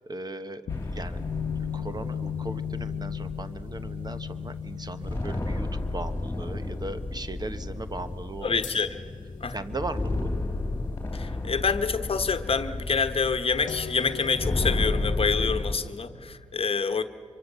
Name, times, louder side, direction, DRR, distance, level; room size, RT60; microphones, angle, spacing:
voice 1, 0.1-1.2 1.7-8.6 9.5-10.3, right 2 dB, 30° right, 11 dB, 1.2 m, -38 dB
sound 1, 0.7-6.9 8.6-11.4 13.7-14.8, left 8 dB, 75° left, 0.8 m, -37 dB
sound 2, 0.7-15.8, left 2 dB, 20° left, 2.9 m, -33 dB
voice 2, 8.4-9.0 9.4-9.6 11.1-17.0, left 5 dB, 45° left, 9 dB, 1.2 m, -27 dB
25.0 x 23.5 x 6.9 m, 2.3 s
cardioid pair, 55°, 13 cm